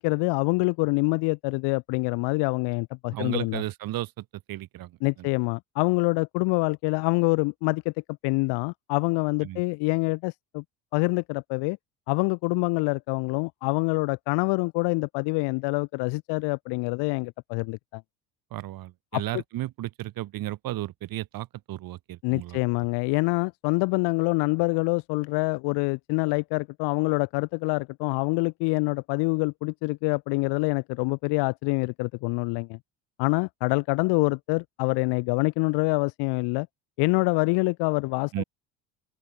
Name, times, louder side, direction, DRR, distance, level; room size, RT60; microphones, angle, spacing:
voice 1, 0.0-3.6 5.0-7.9 8.2-10.6 10.9-11.8 12.1-18.0 19.1-19.2 22.2-32.8 33.2-36.7 37.0-38.4, left 28 dB, 75° left, 1.0 m, -26 dB
voice 2, 3.1-5.3 9.4-9.6 18.5-22.6 38.3-38.4, right 15 dB, 55° right, 1.4 m, -34 dB
open air
supercardioid pair, 95°, 41 cm